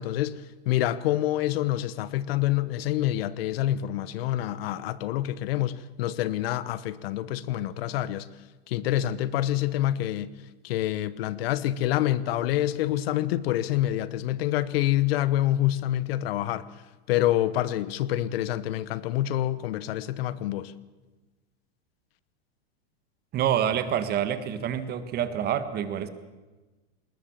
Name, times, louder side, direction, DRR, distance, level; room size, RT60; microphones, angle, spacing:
voice 1, 0.0-8.3 8.7-10.3 10.6-16.7 17.1-20.7, left 13 dB, 65° left, 1.2 m, -27 dB
voice 2, 23.3-26.1, right 9 dB, 30° right, 1.7 m, -27 dB
20.0 x 20.0 x 7.3 m
supercardioid pair, 140°, 32 cm